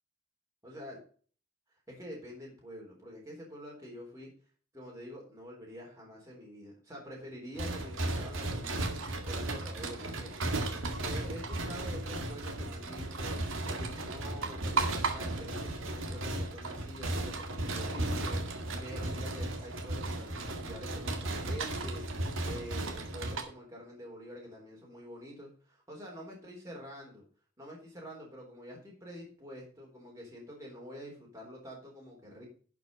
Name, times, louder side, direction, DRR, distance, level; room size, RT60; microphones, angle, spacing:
voice 1, 0.6-1.0 1.9-4.3 4.7-8.9 9.2-10.3 11.0-27.2 27.6-32.5, equal, 15° right, -3 dB, 3.8 m, -47 dB
sound 1, 7.6-23.4, right 2 dB, 60° right, 2.1 m, -35 dB
12.0 x 6.1 x 5.3 m, 0.42 s
head